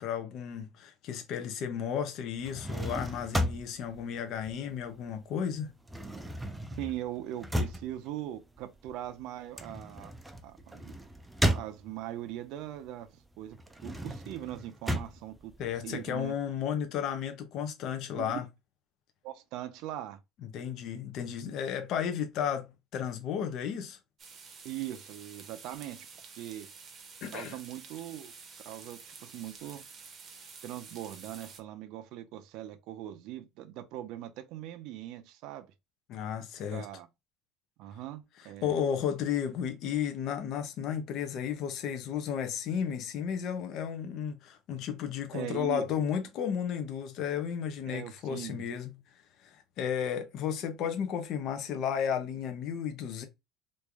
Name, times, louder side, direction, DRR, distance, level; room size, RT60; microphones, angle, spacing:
voice 1, 0.0-5.7 15.6-18.4 20.5-24.0 27.2-27.6 36.1-36.9 38.6-49.0 49.4-53.3, left 8 dB, 50° left, 0.6 m, -33 dB
sound 1, 2.3-5.2 5.4-12.3 12.7-16.3, equal, 5° right, 0.4 m, -35 dB
voice 2, 6.8-10.1 10.4-10.9 11.5-13.6 13.8-15.5 15.8-16.3 18.1-18.4 19.2-20.2 24.6-26.1 26.4-26.7 27.3-28.3 28.7-29.8 30.6-35.7 36.7-37.1 37.8-38.8 45.3-45.9 47.9-48.6, right 13 dB, 65° right, 0.5 m, -40 dB
sound 2, 24.2-31.6, right 5 dB, 30° right, 0.7 m, -50 dB
3.1 x 2.5 x 3.4 m
cardioid pair, 150°, 0 cm